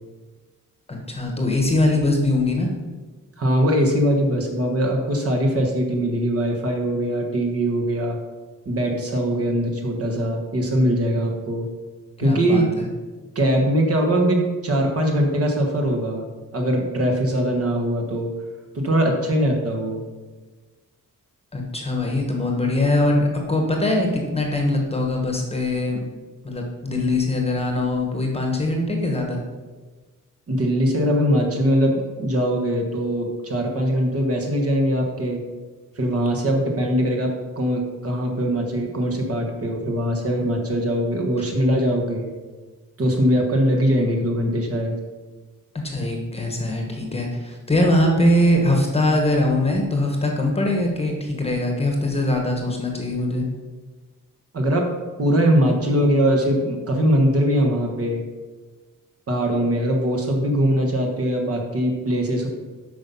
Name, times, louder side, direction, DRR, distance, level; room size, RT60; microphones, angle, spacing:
voice 1, 0.9-2.7 12.2-12.9 21.5-26.0 26.4-29.4 41.4-41.5 45.8-53.4, left 1 dB, 20° left, 1 dB, 1.2 m, -22 dB
voice 2, 3.4-8.2 8.6-11.7 12.2-12.7 13.3-16.3 16.5-18.3 18.7-20.0 30.5-35.4 36.0-42.3 43.0-44.9 54.5-54.9 55.2-58.2 59.3-62.5, equal, 45° right, 1 dB, 1.4 m, -21 dB
8.4 x 5.7 x 5.4 m, 1.3 s
wide cardioid pair, 175°, 33 cm